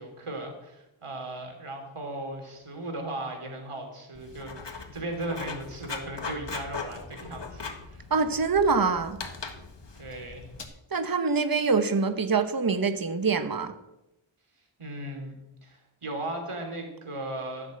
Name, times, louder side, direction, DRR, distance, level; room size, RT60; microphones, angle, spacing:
voice 1, 0.0-8.0 9.9-10.5 14.8-15.3 15.6-17.8, right 1 dB, 85° right, 2 dB, 3.3 m, -37 dB
Writing, 4.1-10.6, left 4 dB, 55° left, 1.8 m, -40 dB
voice 2, 8.1-9.2 10.9-13.7, right 4 dB, 45° right, 9 dB, 1.2 m, -25 dB
15.0 x 7.3 x 7.8 m, 0.91 s
wide cardioid pair, 60°, 49 cm